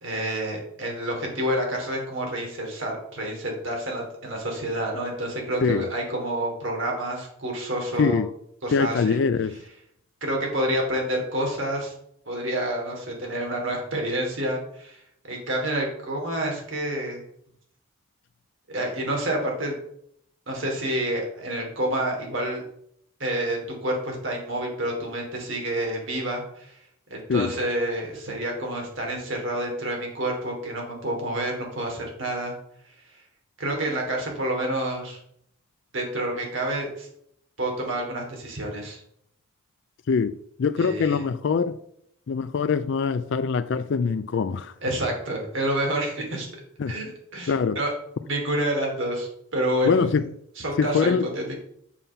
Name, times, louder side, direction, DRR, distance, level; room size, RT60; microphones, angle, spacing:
voice 1, 0.0-8.2 8.6-9.2 10.2-11.9 12.3-17.2 18.7-19.8 20.5-22.6 23.2-26.7 27.1-32.5 33.6-35.2 35.9-37.1 37.6-39.0 40.8-41.2 44.8-46.5 46.9-47.9 48.2-50.1 50.6-51.5, right 1 dB, 60° right, 3.0 m, -28 dB
voice 2, 8.7-9.6 27.3-27.5 40.1-41.8 42.3-44.7 46.8-47.0 47.5-47.8 49.8-50.3 50.8-51.3, left 5 dB, 55° left, 0.4 m, -23 dB
7.2 x 5.6 x 5.6 m
head